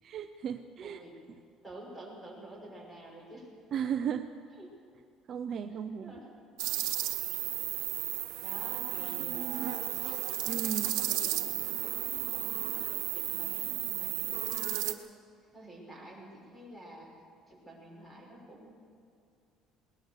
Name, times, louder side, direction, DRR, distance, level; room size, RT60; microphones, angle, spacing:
voice 1, 0.0-1.0 3.7-4.3 5.3-6.1 9.3-9.7 10.5-11.0, right 8 dB, 45° right, 7 dB, 0.7 m, -35 dB
voice 2, 0.8-1.2 1.6-3.5 4.5-4.7 5.7-6.3 8.4-10.0 10.9-15.1 15.5-17.1 17.5-18.7, right 1 dB, 5° left, -2 dB, 6.1 m, -49 dB
sound 1, 6.6-14.9, right 15 dB, 90° right, 1.2 m, -33 dB
20.5 x 19.5 x 6.6 m, 2.4 s
cardioid pair, 145°, 0 cm